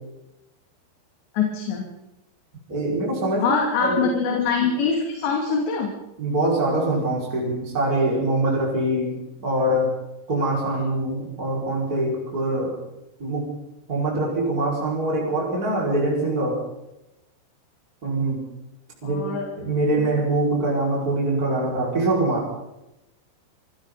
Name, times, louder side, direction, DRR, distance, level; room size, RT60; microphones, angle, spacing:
voice 1, 1.3-1.9 3.4-5.9 19.0-19.7 20.0-20.1, left 5 dB, 70° left, 0 dB, 4.9 m, -24 dB
voice 2, 2.7-3.5 3.8-4.0 6.2-9.9 10.3-12.8 13.2-13.5 13.9-16.6 18.0-18.4 19.0-19.2 19.6-22.5, right 2 dB, 20° right, -5 dB, 6.0 m, -23 dB
28.5 x 24.5 x 4.2 m, 0.93 s
omnidirectional pair, 5.3 m